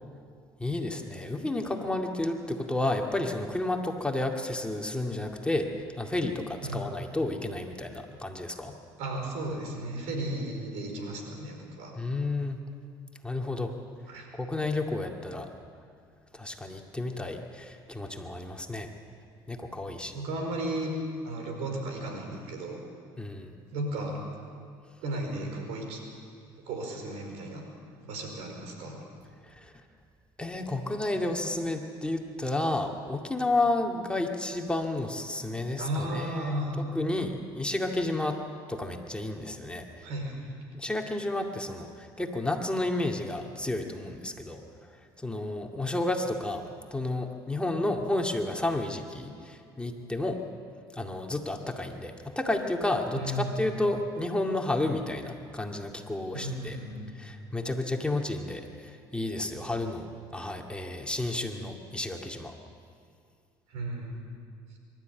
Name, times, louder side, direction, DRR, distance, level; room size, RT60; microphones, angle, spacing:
voice 1, 0.6-8.7 12.0-12.6 13.2-13.7 14.3-15.5 16.3-18.9 19.5-20.2 23.2-23.6 29.5-29.7 30.4-38.4 38.7-40.1 40.7-44.6 45.2-46.6 46.9-50.4 50.9-56.8 57.1-60.1 60.3-62.5, left 2 dB, 10° left, 2 dB, 2.2 m, -31 dB
voice 2, 9.0-11.9 14.1-14.3 20.1-20.9 21.2-22.8 23.7-24.2 25.0-26.0 26.7-27.6 28.0-29.0 35.8-36.8 40.0-40.5 53.1-53.6 56.3-57.1 63.7-64.2, right 1 dB, 80° right, 3 dB, 4.8 m, -34 dB
24.0 x 13.0 x 9.3 m, 2.3 s
supercardioid pair, 80°, 11 cm